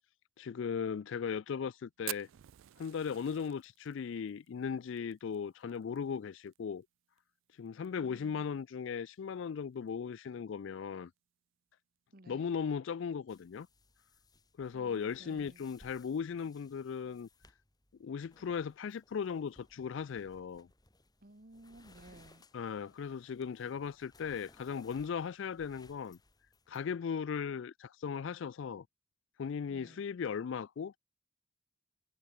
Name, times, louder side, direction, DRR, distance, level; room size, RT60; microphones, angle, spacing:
voice 1, 0.4-2.3 2.8-6.8 7.6-11.1 12.3-13.7 14.6-17.3 18.0-20.7 22.5-26.2 26.7-28.9 29.4-31.0, left 6 dB, 65° left, 0.3 m, -37 dB
Fire, 2.1-6.6 6.8-6.9 7.2-7.3 7.7-8.1 8.6-8.7 9.7-9.9, right 18 dB, 70° right, 0.3 m, -46 dB
voice 2, 8.0-8.5 12.1-12.6 14.7-15.6 20.1-20.3 21.2-22.5 29.7-30.1, right 1 dB, 45° right, 1.7 m, -57 dB
sound 1, 13.3-26.9, left 2 dB, 20° left, 4.6 m, -64 dB
head